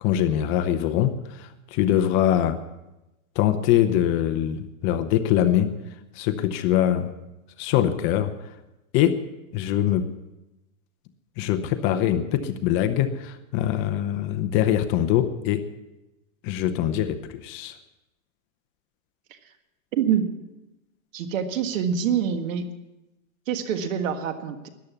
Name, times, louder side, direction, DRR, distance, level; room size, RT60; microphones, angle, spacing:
voice 1, 0.0-2.6 3.4-5.7 6.2-7.1 7.6-8.3 8.9-9.2 9.5-10.1 11.4-15.6 16.4-17.7, left 11 dB, 30° left, 10 dB, 0.7 m, -23 dB
voice 2, 19.9-20.3 21.1-22.6 23.5-24.7, right 8 dB, 65° right, 8 dB, 1.7 m, -25 dB
13.5 x 10.5 x 7.0 m, 0.98 s
supercardioid pair, 150°, 42 cm